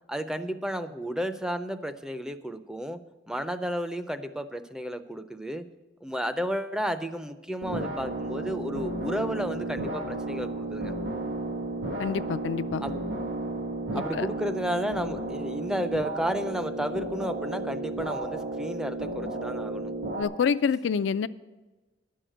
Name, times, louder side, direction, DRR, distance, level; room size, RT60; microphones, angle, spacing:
voice 1, 0.1-3.0 3.3-5.6 6.0-10.9 12.8-13.0 13.9-19.9, equal, 5° right, 10 dB, 0.4 m, -32 dB
sound 1, 7.6-20.2, right 2 dB, 85° right, 1.9 m, -33 dB
voice 2, 12.0-12.8 13.9-14.3 20.2-21.3, left 6 dB, 80° left, 13 dB, 0.4 m, -27 dB
10.5 x 6.4 x 8.9 m, 1.2 s
head